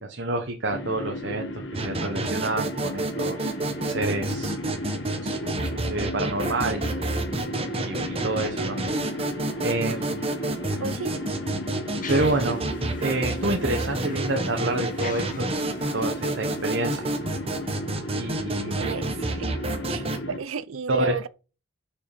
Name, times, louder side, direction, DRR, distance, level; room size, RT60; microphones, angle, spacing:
voice 1, 0.0-3.5 3.9-4.5 5.2-7.0 7.8-8.8 9.2-9.3 9.6-10.3 10.7-10.8 12.1-12.6 13.0-15.6 15.9-17.3 18.2-18.9 20.9-21.2, right 2 dB, 60° right, 1.2 m, -28 dB
sound 1, 0.7-20.4, equal, 60° left, 1.3 m, -35 dB
sound 2, 1.7-20.2, right 2 dB, 30° right, 1.2 m, -30 dB
voice 2, 10.8-11.1 18.8-19.6 19.9-21.3, right 5 dB, 80° right, 0.6 m, -33 dB
sound 3, 12.0-17.0, left 5 dB, 40° left, 1.3 m, -45 dB
6.9 x 5.6 x 5.0 m
head